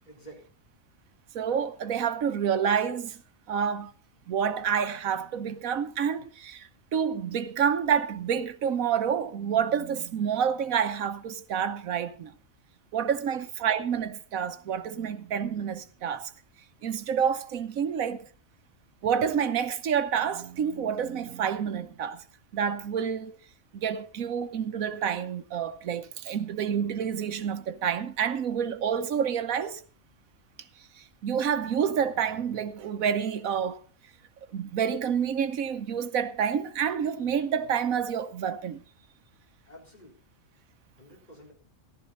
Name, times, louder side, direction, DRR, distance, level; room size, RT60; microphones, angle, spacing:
voice 1, 0.1-0.5 13.3-13.4 39.7-40.2 41.0-41.5, right 1 dB, 30° left, 4.2 m, -50 dB
voice 2, 1.3-3.2 3.5-3.9 4.3-12.3 12.9-16.3 16.8-18.3 19.0-22.2 22.5-23.4 23.7-29.8 31.0-33.8 34.5-38.8, right 7 dB, 90° right, 1.3 m, -28 dB
15.0 x 12.0 x 4.0 m
omnidirectional pair, 1.4 m